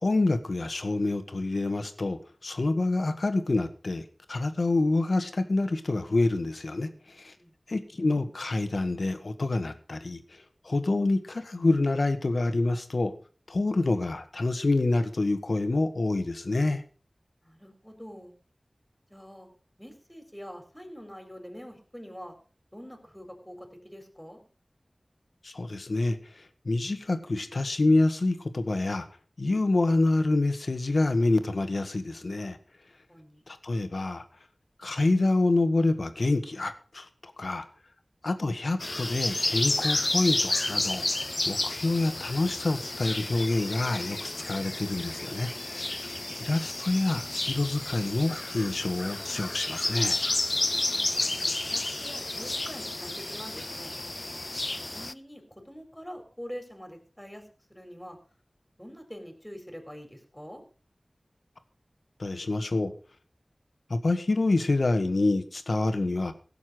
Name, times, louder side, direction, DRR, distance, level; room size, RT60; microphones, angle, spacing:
voice 1, 0.0-6.9 7.2-7.3 7.7-10.2 10.6-13.1 13.5-16.8 25.4-26.2 26.6-29.0 29.4-32.6 33.5-34.2 34.8-37.1 37.4-37.6 38.2-41.0 41.5-46.1 46.4-50.2 62.2-62.9 63.9-66.3, left 2 dB, 75° left, 9 dB, 1.6 m, -27 dB
voice 2, 7.1-7.5 17.4-18.3 19.1-19.5 19.8-22.4 22.7-24.4 33.1-33.4 50.8-53.9 54.9-57.4 57.7-58.2 58.8-60.6, equal, 5° left, 5 dB, 4.0 m, -45 dB
sound 1, 38.8-55.1, left 2 dB, 40° left, 0.5 m, -31 dB
16.5 x 7.1 x 6.2 m, 0.39 s
wide cardioid pair, 65°, 0 cm